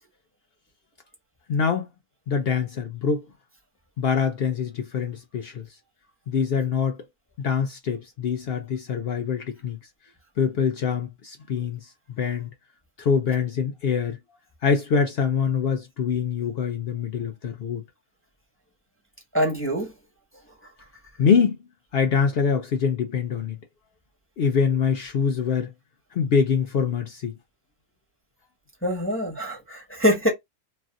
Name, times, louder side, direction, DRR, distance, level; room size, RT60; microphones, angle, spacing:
voice 1, 1.5-1.9 2.3-3.3 4.0-5.7 6.3-7.0 7.4-9.8 10.4-11.9 12.2-12.5 13.0-14.2 14.6-17.8 21.2-21.6 21.9-23.6 24.4-25.7 26.1-27.3, left 6 dB, 85° left, 0.5 m, -24 dB
voice 2, 19.3-19.9 28.8-30.3, equal, 10° left, 1.1 m, -24 dB
3.2 x 2.5 x 2.4 m
omnidirectional pair, 1.6 m